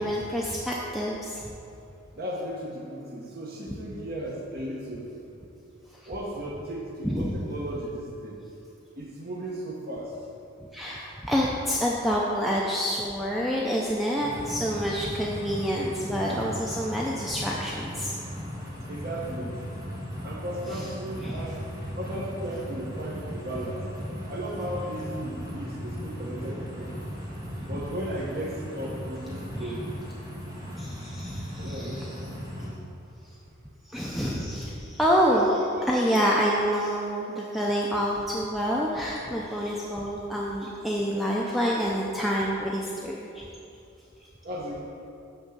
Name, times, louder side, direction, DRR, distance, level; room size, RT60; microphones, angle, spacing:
voice 1, 0.0-1.4 7.0-7.3 10.7-18.1 20.7-20.9 21.2-21.5 27.7-27.8 29.5-29.7 30.8-32.2 33.9-43.4, equal, ahead, -4 dB, 0.5 m, -27 dB
voice 2, 2.1-5.1 6.1-8.4 9.0-10.1 18.9-19.6 20.2-21.6 22.0-23.8 24.3-27.1 27.7-29.9 31.6-32.2 32.6-32.8 44.4-44.8, right 1 dB, 45° right, -2 dB, 1.0 m, -35 dB
sound 1, 14.2-32.7, equal, 15° right, 1.6 m, -37 dB
10.5 x 3.6 x 6.6 m, 2.7 s
head